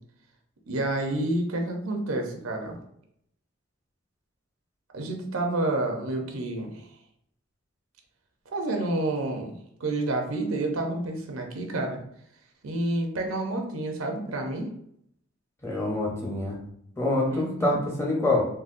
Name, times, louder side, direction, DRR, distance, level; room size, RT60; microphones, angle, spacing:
voice 1, 0.7-2.8 4.9-6.8 8.5-9.5 9.8-12.0 12.6-14.7 17.3-17.8, right 2 dB, 90° right, 3 dB, 0.6 m, -29 dB
voice 2, 15.6-16.6 17.0-18.4, left 2 dB, 15° left, -2 dB, 0.7 m, -26 dB
3.8 x 2.1 x 2.5 m, 0.70 s
head